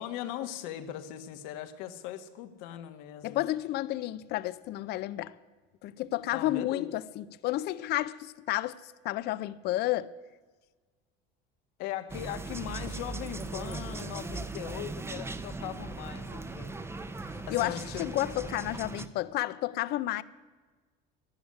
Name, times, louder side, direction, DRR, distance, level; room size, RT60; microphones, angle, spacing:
voice 1, 0.0-3.4 6.3-6.9 11.8-16.7 17.4-18.2 18.4-18.5 19.0-19.1, left 11 dB, 85° left, 1.4 m, -39 dB
voice 2, 3.2-5.3 5.8-10.1 17.5-20.2, left 15 dB, 60° left, 0.6 m, -31 dB
sound 1, 12.1-19.1, right 3 dB, 15° right, 0.8 m, -39 dB
13.0 x 11.5 x 9.6 m
cardioid pair, 120°, 19 cm